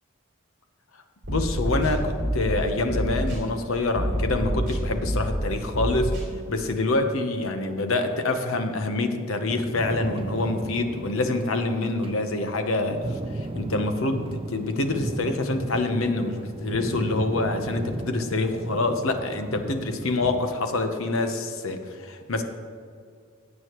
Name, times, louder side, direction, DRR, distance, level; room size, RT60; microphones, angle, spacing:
sound 1, 1.2-2.6 2.9-3.4 3.9-5.4 5.7-6.2, equal, 55° right, 3.0 m, -27 dB
voice 1, 1.3-6.1 6.5-22.4, left 2 dB, 80° left, 6 dB, 1.0 m, -26 dB
sound 2, 9.5-20.5, right 2 dB, 25° right, 0.4 m, -36 dB
16.0 x 8.5 x 3.1 m, 2.2 s
head